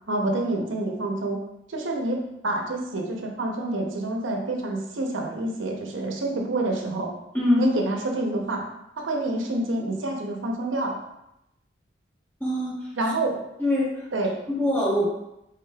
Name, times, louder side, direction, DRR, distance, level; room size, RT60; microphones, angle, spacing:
voice 1, 0.1-1.4 1.7-7.1 7.6-8.6 9.0-11.0 12.9-13.4 14.1-14.3, right 2 dB, 90° right, 1 dB, 0.7 m, -27 dB
voice 2, 12.4-12.8 13.6-14.1 14.5-15.1, left 1 dB, 10° left, -7 dB, 1.1 m, -23 dB
4.8 x 3.4 x 2.3 m, 0.85 s
head